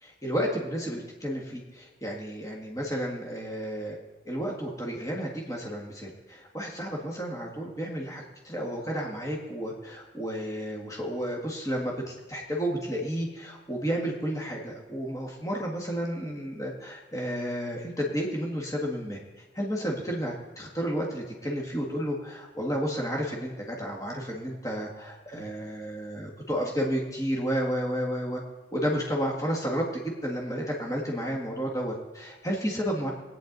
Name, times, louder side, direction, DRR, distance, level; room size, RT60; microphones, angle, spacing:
voice 1, 0.0-4.0 4.3-19.2 19.5-28.4 28.7-33.1, equal, 15° left, -2 dB, 1.7 m, -32 dB
20.5 x 9.3 x 4.0 m, 1.2 s
head